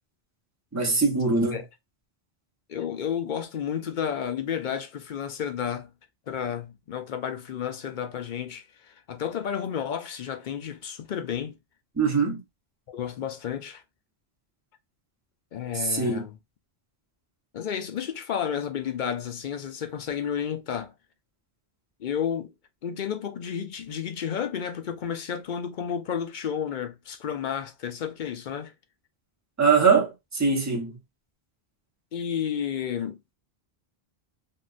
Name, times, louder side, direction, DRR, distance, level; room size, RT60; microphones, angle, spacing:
voice 1, 0.7-1.6 12.0-12.4 15.7-16.2 29.6-31.0, right 5 dB, 15° right, 1.0 m, -22 dB
voice 2, 2.7-5.9 6.3-11.5 12.9-13.8 15.5-16.4 17.5-20.9 22.0-22.5 22.8-28.7 32.1-33.2, left 8 dB, 55° left, 0.7 m, -31 dB
3.7 x 2.4 x 2.4 m
omnidirectional pair, 1.1 m